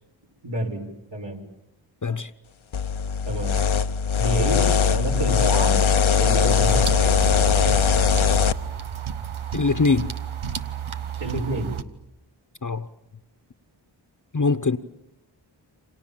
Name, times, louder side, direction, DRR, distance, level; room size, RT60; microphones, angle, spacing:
voice 1, 0.4-0.8 1.1-1.4 3.2-3.5 4.1-5.8 6.2-6.9 11.2-11.7, right 1 dB, 65° right, 6.3 m, -28 dB
sound 1, 2.7-8.5, left 6 dB, 80° left, 1.0 m, -20 dB
sound 2, 6.5-11.8, right 8 dB, 85° right, 1.3 m, -32 dB
voice 2, 9.5-10.1 12.6-12.8 14.3-14.8, left 4 dB, 40° left, 1.1 m, -22 dB
29.0 x 26.5 x 7.6 m
wide cardioid pair, 50°, 47 cm